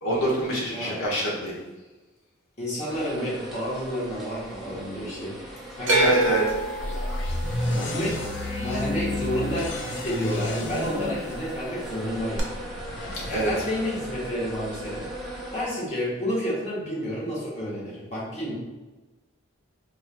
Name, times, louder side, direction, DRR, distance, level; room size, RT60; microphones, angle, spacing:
voice 1, 0.0-1.5 6.0-6.4 13.3-13.5, right 1 dB, 85° left, -6 dB, 1.2 m, -25 dB
voice 2, 0.7-1.0 2.6-6.1 7.6-12.4 13.3-15.1 15.5-18.5, equal, 35° left, -6 dB, 1.1 m, -30 dB
sound 1, 2.9-15.7, right 1 dB, ahead, 0.7 m, -38 dB
sound 2, 5.9-10.1 10.3-11.0 12.4-12.5, right 2 dB, 70° right, 0.7 m, -27 dB
sound 3, 6.8-14.7, left 2 dB, 65° left, 0.5 m, -32 dB
4.4 x 3.0 x 2.2 m, 1.2 s
head